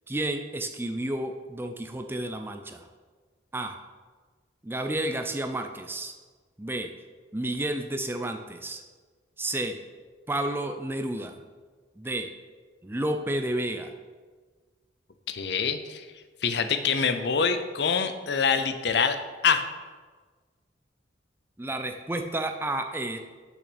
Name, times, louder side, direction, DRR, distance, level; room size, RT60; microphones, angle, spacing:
voice 1, 0.1-2.9 3.5-3.8 4.6-6.1 6.6-6.9 7.3-8.8 9.4-9.8 10.3-11.4 12.0-12.3 12.8-14.0 21.6-23.2, right 1 dB, 10° right, 6 dB, 0.4 m, -31 dB
voice 2, 15.3-16.0 16.4-19.2 19.4-19.7, left 6 dB, 65° left, 9 dB, 0.6 m, -25 dB
6.3 x 6.1 x 6.1 m, 1.4 s
head